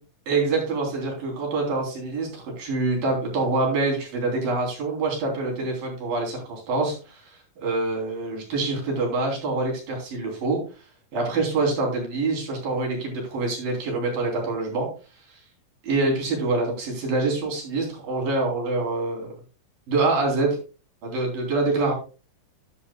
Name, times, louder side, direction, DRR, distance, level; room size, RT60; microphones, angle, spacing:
voice 1, 0.3-7.2 7.6-10.6 11.1-14.9 15.8-19.3 19.9-20.6 21.0-21.9, right 3 dB, 85° right, 0 dB, 5.4 m, -25 dB
10.5 x 10.5 x 2.3 m, 0.32 s
omnidirectional pair, 3.9 m